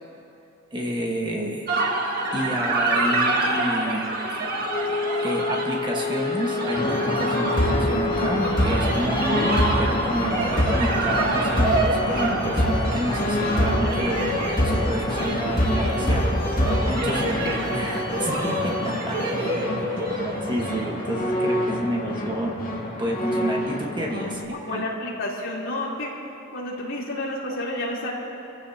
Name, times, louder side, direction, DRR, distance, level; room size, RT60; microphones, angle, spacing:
voice 1, 0.7-1.7 2.3-4.1 5.2-16.3 16.9-19.5 20.4-22.6 23.0-24.9, right 1 dB, 20° right, -1 dB, 1.4 m, -30 dB
sound 1, 1.7-21.1, right 2 dB, 45° right, 1.8 m, -28 dB
Wind instrument woodwind instrument, 4.7-8.9, left 4 dB, 30° left, 0.4 m, -29 dB
sound 2, 6.7-24.4, left 1 dB, 45° left, 2.1 m, -25 dB
voice 2, 17.0-17.4 18.4-18.6 19.1-19.2 24.2-26.1 26.5-28.1, left 1 dB, 65° left, -5 dB, 3.5 m, -31 dB
28.0 x 15.5 x 2.8 m, 2.8 s
head